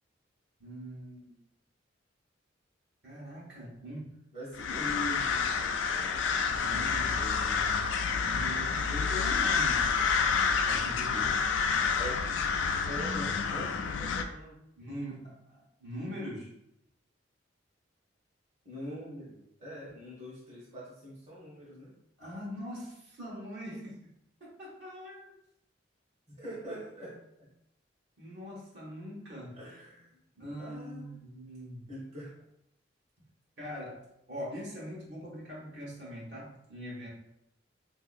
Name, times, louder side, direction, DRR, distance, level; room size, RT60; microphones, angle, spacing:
voice 1, 0.6-1.3 3.0-4.1 6.4-9.9 10.6-11.5 14.7-16.5 22.2-23.9 24.4-25.3 28.2-29.6 30.3-31.9 33.6-37.1, equal, 65° right, -5 dB, 1.1 m, -42 dB
voice 2, 4.3-6.2 12.0-12.2 12.8-14.6 18.6-21.9 26.4-27.5 29.5-30.2 30.6-31.2 31.9-32.3, equal, 35° right, -7 dB, 1.0 m, -43 dB
sound 1, 4.5-14.2, left 5 dB, 80° left, 0.3 m, -29 dB
3.8 x 2.7 x 2.5 m, 0.80 s
head